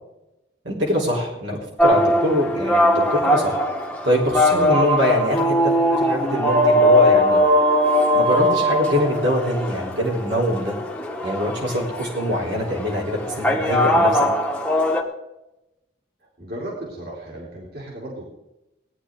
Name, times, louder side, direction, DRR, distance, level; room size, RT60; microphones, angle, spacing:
voice 1, 0.6-1.5 1.8-3.6 4.0-5.7 6.0-7.4 8.1-10.8 11.2-14.3, equal, 75° right, -3 dB, 3.9 m, -23 dB
sound 1, 1.8-15.0, equal, 5° left, 1.3 m, -20 dB
voice 2, 16.2-18.2, right 1 dB, 55° right, -3 dB, 3.4 m, -35 dB
19.0 x 10.0 x 3.8 m, 0.93 s
head